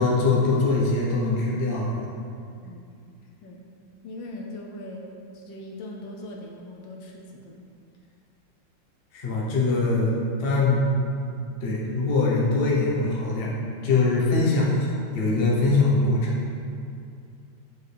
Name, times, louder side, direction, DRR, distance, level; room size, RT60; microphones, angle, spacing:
voice 1, 0.0-2.1 9.1-10.1 10.4-10.8 11.6-13.5 13.8-16.3, left 3 dB, 40° left, -5 dB, 1.0 m, -22 dB
voice 2, 4.0-7.6, left 1 dB, 75° left, 0 dB, 1.4 m, -40 dB
6.9 x 4.8 x 3.4 m, 2.4 s
omnidirectional pair, 2.1 m